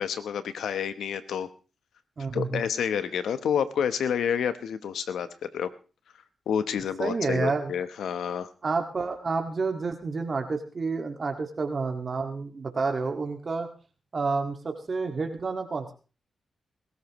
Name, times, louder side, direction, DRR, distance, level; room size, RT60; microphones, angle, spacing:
voice 1, 0.0-1.5 2.3-5.7 6.5-8.5, left 8 dB, 85° left, 12 dB, 1.0 m, -29 dB
voice 2, 2.2-2.6 7.0-7.7 8.6-13.7 14.1-15.9, right 4 dB, 55° right, 4 dB, 2.1 m, -29 dB
21.5 x 13.5 x 3.1 m, 0.35 s
supercardioid pair, 45°, 0 cm